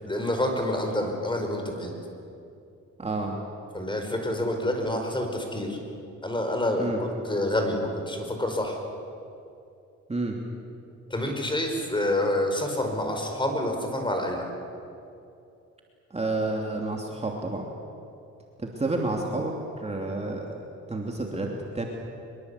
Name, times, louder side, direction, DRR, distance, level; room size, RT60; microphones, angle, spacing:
voice 1, 0.0-1.9 3.7-5.8 6.2-8.8 11.1-14.5, left 1 dB, 15° left, 4 dB, 5.2 m, -28 dB
voice 2, 3.0-3.4 6.8-7.0 10.1-10.3 16.1-17.7 18.6-19.5 19.8-20.5 20.9-21.9, right 2 dB, 20° right, 0 dB, 3.0 m, -30 dB
24.5 x 22.0 x 8.4 m, 2.6 s
cardioid pair, 90°, 30 cm